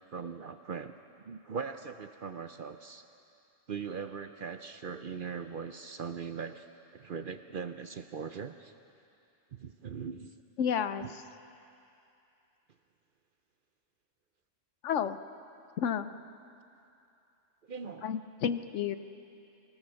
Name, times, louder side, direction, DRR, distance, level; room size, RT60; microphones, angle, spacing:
voice 1, 0.1-3.0 3.7-6.7 6.9-8.7 9.5-10.3 11.0-11.1 17.7-18.1, right 6 dB, 50° right, 9 dB, 0.7 m, -40 dB
voice 2, 10.6-11.0 14.8-15.2 15.8-16.1 18.0-18.9, left 8 dB, 70° left, 11 dB, 1.0 m, -31 dB
24.5 x 17.0 x 7.0 m, 2.7 s
omnidirectional pair, 1.3 m